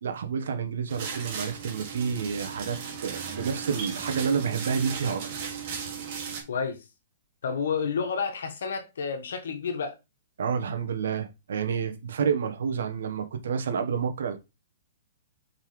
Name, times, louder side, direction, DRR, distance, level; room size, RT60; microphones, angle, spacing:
voice 1, 0.0-5.6 10.4-14.4, right 6 dB, 75° right, 1.2 m, -29 dB
sound 1, 0.9-6.4, right 6 dB, 40° right, 2.0 m, -36 dB
voice 2, 6.5-6.8 7.4-10.0, left 6 dB, 80° left, 1.4 m, -30 dB
5.5 x 5.4 x 3.2 m
hypercardioid pair, 165°, 0 cm